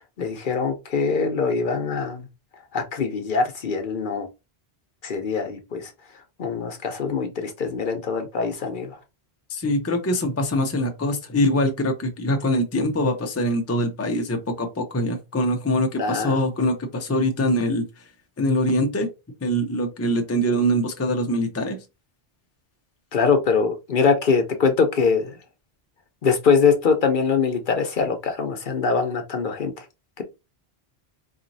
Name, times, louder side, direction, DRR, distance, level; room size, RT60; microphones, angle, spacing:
voice 1, 0.2-2.3 2.7-4.3 5.0-5.9 6.4-9.0 15.9-16.4 23.1-25.4 26.2-29.8, left 5 dB, 55° left, 0.8 m, -23 dB
voice 2, 9.5-17.8 18.4-19.1 19.4-21.8, equal, 20° left, 0.5 m, -23 dB
4.0 x 3.0 x 2.6 m
omnidirectional pair, 1.1 m